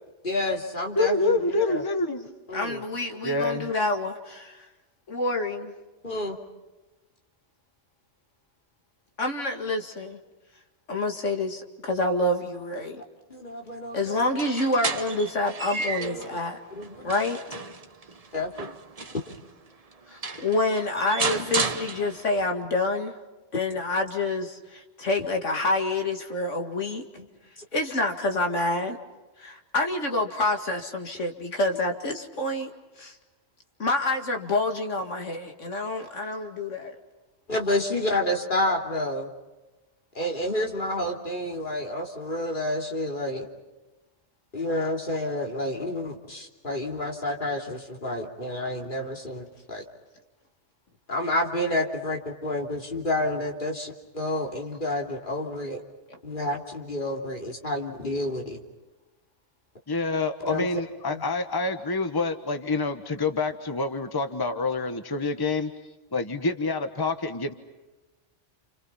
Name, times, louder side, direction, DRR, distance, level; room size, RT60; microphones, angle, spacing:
voice 1, 0.2-1.8 2.5-2.8 6.0-6.4 13.3-14.2 16.0-16.4 16.7-17.1 18.3-18.7 37.5-39.3 40.1-43.5 44.5-49.8 51.1-55.8 56.2-58.6 60.5-60.7 61.1-61.2, left 1 dB, 45° left, 1 dB, 3.3 m, -29 dB
voice 2, 0.9-2.3 3.2-3.7 59.9-65.7 66.1-67.5, left 3 dB, 20° left, 8 dB, 1.3 m, -27 dB
voice 3, 2.5-4.7 5.1-5.7 9.2-10.2 10.9-13.0 13.9-16.6 17.0-17.4 20.1-23.1 23.5-27.0 27.7-29.0 29.4-32.7 33.0-33.2 33.8-37.0 56.1-56.2, left 2 dB, 90° left, 4 dB, 2.4 m, -27 dB
sound 1, 14.2-16.3 16.8-19.4 19.9-20.0 20.2-22.4, right 4 dB, 35° right, 1.1 m, -32 dB
30.0 x 29.0 x 5.7 m, 1.1 s
omnidirectional pair, 1.2 m